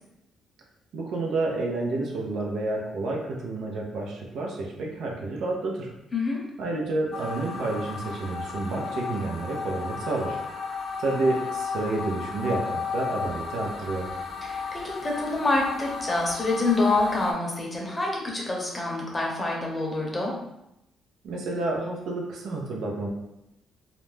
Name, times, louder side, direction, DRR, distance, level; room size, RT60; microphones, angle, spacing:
voice 1, 0.9-5.9 6.6-10.4 11.0-14.1 21.2-23.1, right 2 dB, 75° right, -1 dB, 0.6 m, -29 dB
sound 1, 7.1-17.3, left 5 dB, 75° left, 0.6 m, -34 dB
voice 2, 14.4-20.3, left 2 dB, 20° left, -2 dB, 0.8 m, -26 dB
2.5 x 2.1 x 3.2 m, 0.84 s
cardioid pair, 90°, 0 cm